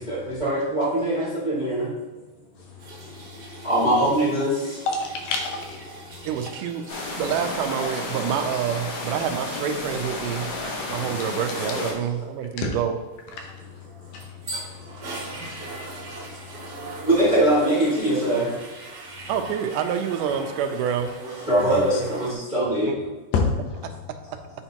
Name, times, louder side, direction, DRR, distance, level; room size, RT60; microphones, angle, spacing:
voice 1, 0.0-1.9 3.6-4.8 6.1-6.2 6.8-6.9 11.8-11.9 14.1-14.2 14.8-15.3 15.8-16.0 16.9-18.5 20.3-20.4 21.2-22.9, right 1 dB, 20° right, -7 dB, 0.9 m, -23 dB
voice 2, 2.6-3.7 4.9-5.9 11.0-11.1 12.6-12.7 13.4-14.6 14.9-15.4 15.9-17.1 19.1-19.3 21.6-22.0 23.3-23.9, left 4 dB, 90° left, 1 dB, 2.6 m, -31 dB
sound 1, 2.8-7.4 7.7-8.0 13.8-22.3, right 2 dB, 60° right, 1.1 m, -40 dB
voice 3, 6.3-6.8 7.2-13.0 19.3-21.2 22.9-23.0 23.8-23.9, right 8 dB, 85° right, 7 dB, 2.1 m, -27 dB
sound 2, 6.9-11.9, left 2 dB, 65° left, 2.4 m, -32 dB
9.0 x 4.3 x 2.9 m, 1.2 s
omnidirectional pair, 3.7 m